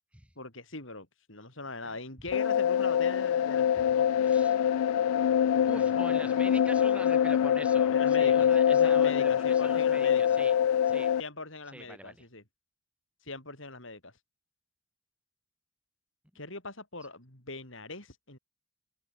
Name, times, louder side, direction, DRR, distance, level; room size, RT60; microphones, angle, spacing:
voice 1, 0.4-4.3 5.5-6.3 7.9-10.4 11.2-12.4 13.2-14.1 16.3-18.4, left 3 dB, 60° left, 6.5 m, -41 dB
sound 1, 2.3-11.2, left 9 dB, 85° left, 0.3 m, -24 dB
voice 2, 4.2-4.6 5.7-10.5 10.8-11.1 11.7-12.1, right 1 dB, 5° right, 4.6 m, -44 dB
head